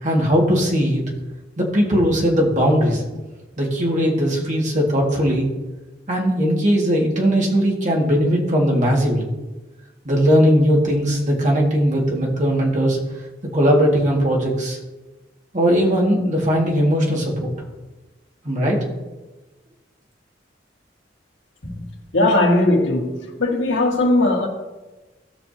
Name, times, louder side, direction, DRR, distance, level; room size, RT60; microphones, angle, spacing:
voice 1, 0.0-1.0 1.6-3.0 3.6-5.5 6.1-9.3 10.0-13.0 13.5-14.8 15.5-17.5 18.4-18.8, equal, 40° right, 2.0 m, -19 dB
voice 2, 22.1-23.1 23.4-24.5, left 2 dB, 90° left, 1.8 m, -18 dB
17.0 x 6.0 x 2.8 m
head